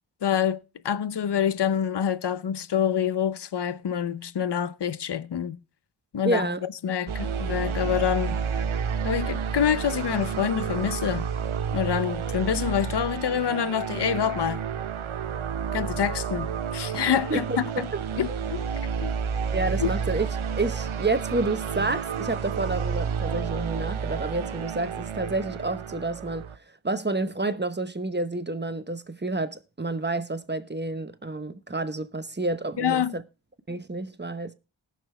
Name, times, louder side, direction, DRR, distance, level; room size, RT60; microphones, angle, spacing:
voice 1, 0.2-5.6 6.1-8.4 9.0-11.3 11.7-14.6 15.7-16.5 16.7-17.4 17.8-17.9 18.2-18.6 19.0-19.1 19.8-19.9 32.8-33.1, left 8 dB, 55° left, 0.7 m, -26 dB
voice 2, 6.2-6.6 17.3-17.6 17.9-18.0 18.3-18.4 19.5-20.3 20.6-26.5 26.8-33.2 33.7-34.5, right 2 dB, 20° right, 1.0 m, -29 dB
sound 1, 7.1-26.6, right 6 dB, 75° right, 0.8 m, -30 dB
19.0 x 6.7 x 3.4 m
wide cardioid pair, 50°, 48 cm